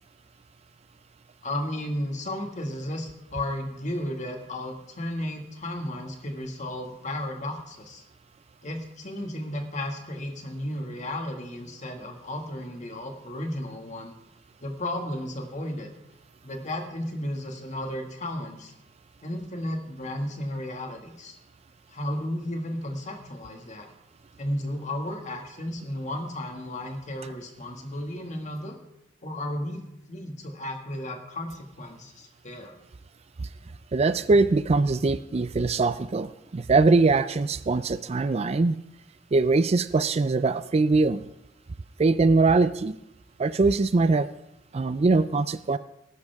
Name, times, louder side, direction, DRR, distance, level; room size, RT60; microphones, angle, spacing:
voice 1, 1.4-8.0 8.6-14.1 14.6-15.9 16.4-18.7 19.2-21.4 21.9-23.9 24.4-28.8 29.2-29.8 30.1-32.8, left 1 dB, 40° left, 3 dB, 2.0 m, -34 dB
voice 2, 33.9-38.8 39.3-41.2 42.0-43.0 43.4-44.3 44.7-45.8, right 3 dB, 35° right, 14 dB, 0.4 m, -22 dB
19.5 x 11.5 x 3.6 m, 0.87 s
head